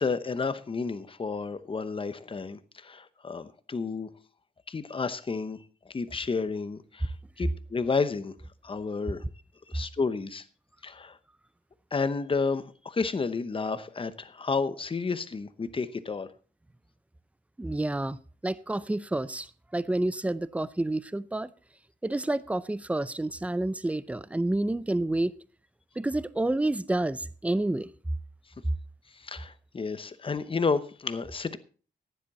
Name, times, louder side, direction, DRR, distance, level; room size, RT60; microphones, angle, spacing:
voice 1, 0.0-4.1 4.7-5.6 5.9-8.3 8.6-9.2 9.7-10.4 10.8-11.2 11.9-16.3 29.2-31.6, left 4 dB, 30° left, 0.8 m, -31 dB
voice 2, 17.6-18.2 18.4-21.5 22.0-25.3 26.0-27.9, right 2 dB, 10° right, 0.5 m, -29 dB
15.0 x 10.5 x 4.2 m
wide cardioid pair, 160°, 17 cm